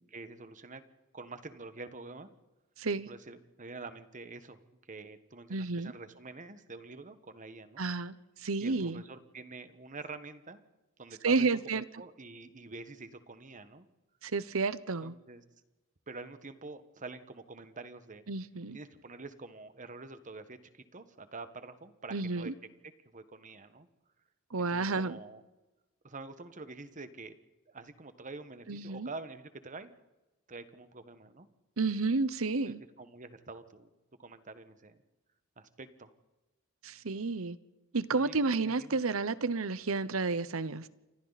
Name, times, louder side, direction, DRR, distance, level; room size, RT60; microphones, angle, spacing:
voice 1, 0.1-0.8 1.1-2.3 3.1-4.6 4.9-7.8 8.6-10.6 11.0-13.9 15.0-15.4 16.1-18.2 18.7-22.5 23.0-23.9 24.7-25.4 26.0-27.4 27.7-29.9 30.5-31.5 32.6-33.9 34.2-35.0 35.6-36.1 38.2-39.0, right 3 dB, 40° right, 1.5 m, -47 dB
voice 2, 2.8-3.1 5.5-5.9 7.8-9.0 11.2-11.8 14.2-15.2 18.3-18.8 22.1-22.5 24.5-25.2 28.7-29.1 31.8-32.8 36.8-37.6 37.9-40.9, right 3 dB, 90° right, 0.9 m, -31 dB
29.0 x 24.5 x 4.2 m
head